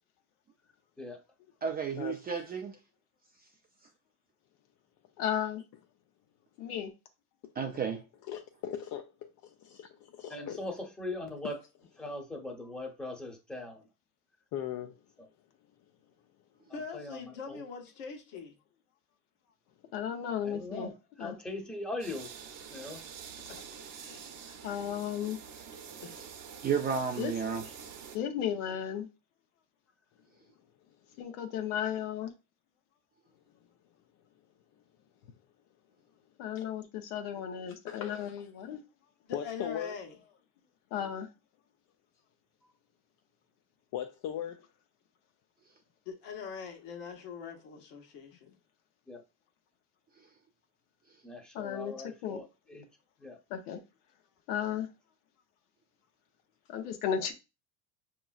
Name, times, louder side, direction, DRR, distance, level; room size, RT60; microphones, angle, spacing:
voice 1, 1.6-2.7 7.6-8.0 26.6-27.6, right 6 dB, 20° right, 0.4 m, -32 dB
voice 2, 5.2-5.6 6.6-6.9 19.9-20.9 21.2-21.4 24.6-25.4 27.2-27.3 28.1-29.1 31.2-32.3 36.4-38.8 40.9-41.3 51.5-52.4 53.5-53.8 54.5-54.9 56.7-57.3, left 9 dB, 80° left, 0.9 m, -34 dB
voice 3, 8.3-10.6 11.4-11.5 14.5-14.9 31.1-31.2 36.5-36.6 37.9-38.3 39.3-40.0 43.9-44.6, left 10 dB, 45° left, 0.5 m, -39 dB
voice 4, 10.3-11.5 12.0-13.8 16.9-17.2 17.5-17.6 20.4-20.9 21.2-22.3 22.7-23.0 49.1-49.2 51.2-52.4 52.7-52.8 53.2-53.4, left 2 dB, ahead, 0.8 m, -40 dB
voice 5, 16.7-18.6 23.5-23.6 23.9-24.9 26.0-26.2 39.2-40.2 46.0-48.5, left 5 dB, 65° left, 1.3 m, -43 dB
sound 1, 22.0-28.2, right 7 dB, 45° right, 0.8 m, -47 dB
5.1 x 2.9 x 2.4 m
supercardioid pair, 110°, 45 cm